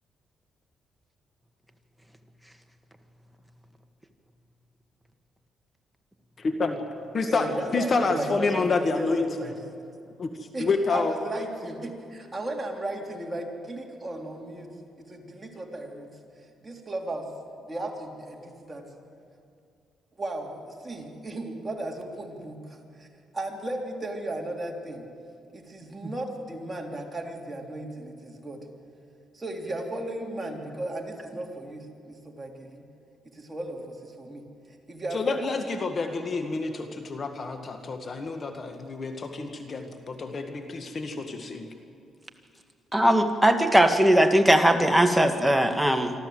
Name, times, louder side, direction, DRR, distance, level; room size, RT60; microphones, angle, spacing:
voice 1, 6.4-6.8 7.1-7.5 7.7-9.3 10.2-10.3 10.6-11.1 35.1-41.7, left 4 dB, 40° left, 6 dB, 1.7 m, -28 dB
voice 2, 7.3-9.6 10.5-14.7 15.0-16.1 16.6-17.3 17.6-18.8 20.2-23.1 23.3-25.0 25.5-28.6 29.3-32.8 33.3-34.4 34.9-35.4, right 1 dB, 20° right, 1 dB, 3.3 m, -35 dB
voice 3, 42.9-46.1, right 1 dB, 5° right, 6 dB, 1.7 m, -20 dB
26.0 x 13.0 x 7.8 m, 2.5 s
cardioid pair, 90°, 0 cm